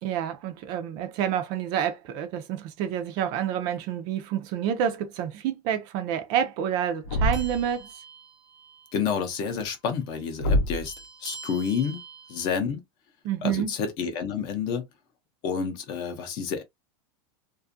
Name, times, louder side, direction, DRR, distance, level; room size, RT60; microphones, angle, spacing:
voice 1, 0.0-7.9 13.2-13.7, right 9 dB, 35° right, 0.3 m, -28 dB
Thump thud, 7.0-7.7 10.4-10.9, left 1 dB, 65° left, 0.7 m, -25 dB
sound 1, 7.3-9.0 9.3-9.5 10.9-12.6, right 4 dB, 5° right, 0.7 m, -45 dB
voice 2, 8.9-10.9 11.2-12.0 12.3-12.8 13.4-14.9 15.4-16.6, left 6 dB, 35° left, 0.6 m, -29 dB
2.5 x 2.3 x 2.5 m
supercardioid pair, 175°, 13 cm